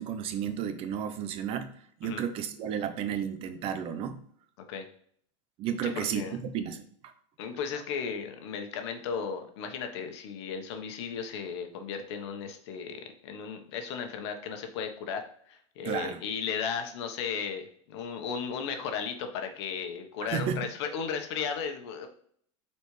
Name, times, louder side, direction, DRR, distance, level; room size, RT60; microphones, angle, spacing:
voice 1, 0.0-1.7 2.0-4.2 5.6-7.1 15.8-16.2 20.2-20.6, right 8 dB, 40° right, 9 dB, 0.8 m, -33 dB
voice 2, 5.8-6.4 7.4-22.1, left 6 dB, 65° left, 5 dB, 1.3 m, -35 dB
8.0 x 4.4 x 3.3 m, 0.62 s
supercardioid pair, 140°, 16 cm